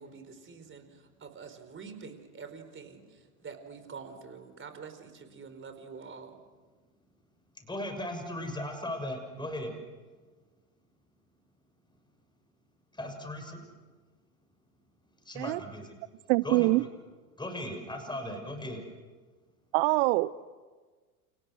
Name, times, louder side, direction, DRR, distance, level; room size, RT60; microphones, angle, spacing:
voice 1, 0.0-6.4, right 5 dB, 25° right, 8 dB, 4.8 m, -46 dB
voice 2, 7.6-9.7 12.9-13.6 15.2-15.9 16.4-16.7 17.4-18.8, left 1 dB, 10° left, 5 dB, 6.8 m, -37 dB
voice 3, 16.3-16.8 19.7-20.4, right 21 dB, 50° right, 19 dB, 0.7 m, -24 dB
29.5 x 29.5 x 6.5 m, 1.4 s
hypercardioid pair, 80°, 45 cm